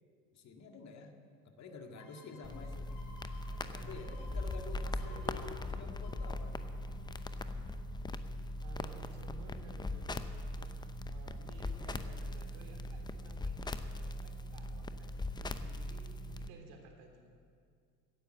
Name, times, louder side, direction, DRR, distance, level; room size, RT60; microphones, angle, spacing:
voice 1, 0.3-1.2 1.5-2.9 3.5-6.7, left 4 dB, 35° left, 4 dB, 2.1 m, -49 dB
sound 1, 2.0-7.5 7.9-8.0, left 2 dB, 65° left, 3.5 m, -58 dB
sound 2, 2.4-16.5, left 2 dB, 10° left, 0.6 m, -40 dB
voice 2, 4.2-5.3 5.6-6.3 8.6-10.7 11.1-17.3, right 4 dB, 60° right, 2 dB, 3.3 m, -57 dB
17.0 x 10.0 x 7.7 m, 2.2 s
hypercardioid pair, 90°, 46 cm